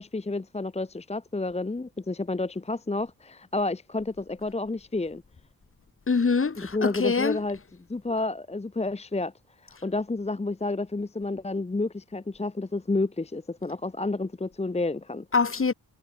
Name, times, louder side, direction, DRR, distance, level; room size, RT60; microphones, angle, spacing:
voice 1, 0.0-5.2 6.6-7.6 7.9-9.3 9.6-15.3, left 2 dB, 20° left, 0.9 m, -30 dB
voice 2, 6.1-7.4 15.3-15.7, left 4 dB, 35° left, 1.6 m, -24 dB
wide cardioid pair, 120°, 36 cm